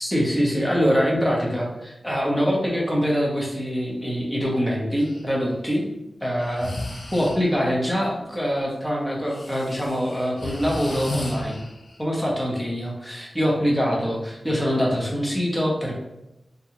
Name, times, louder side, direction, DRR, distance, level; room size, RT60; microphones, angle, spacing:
voice 1, 0.0-5.9 6.2-6.7 7.1-11.7 12.0-15.9, equal, 10° left, -3 dB, 0.9 m, -24 dB
Breathing, 5.0-5.2 6.4-7.6 9.3-12.0, left 1 dB, 50° left, 0.6 m, -33 dB
3.6 x 2.3 x 3.0 m, 0.92 s
wide cardioid pair, 75°, 0 cm